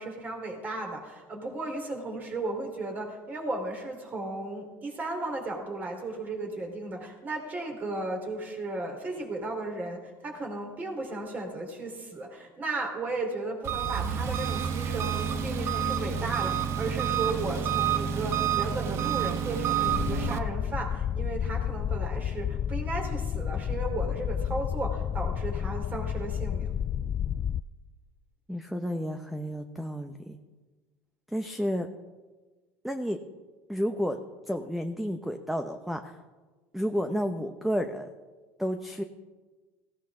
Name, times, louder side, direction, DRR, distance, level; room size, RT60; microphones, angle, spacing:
voice 1, 0.0-26.7, right 2 dB, 30° right, 1 dB, 4.0 m, -35 dB
Engine, 13.6-20.4, right 8 dB, 45° right, 1.2 m, -29 dB
sound 1, 19.8-27.6, left 9 dB, 35° left, 0.3 m, -31 dB
voice 2, 28.5-30.4 31.3-31.9 32.8-33.2 33.7-34.2 34.5-36.2 36.7-38.1 38.6-39.0, equal, ahead, 7 dB, 0.8 m, -31 dB
17.0 x 16.5 x 3.8 m, 1.3 s
supercardioid pair, 120°, 6 cm